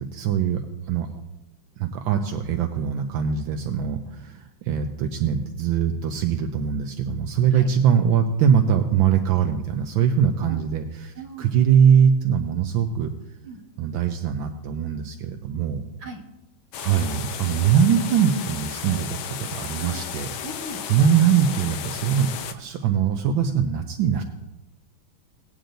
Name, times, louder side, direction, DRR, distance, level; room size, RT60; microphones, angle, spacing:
voice 1, 0.1-0.6 0.9-1.1 1.8-13.1 13.8-15.8 16.8-20.3 20.9-24.2, right 8 dB, 75° right, 5 dB, 1.4 m, -22 dB
voice 2, 11.2-11.5 13.4-13.6 16.0-16.2 19.8-20.0 20.4-20.8, right 2 dB, 35° right, -2 dB, 1.7 m, -38 dB
sound 1, 16.7-22.5, left 9 dB, 80° left, 1.5 m, -34 dB
18.0 x 9.0 x 2.6 m, 0.97 s
omnidirectional pair, 2.3 m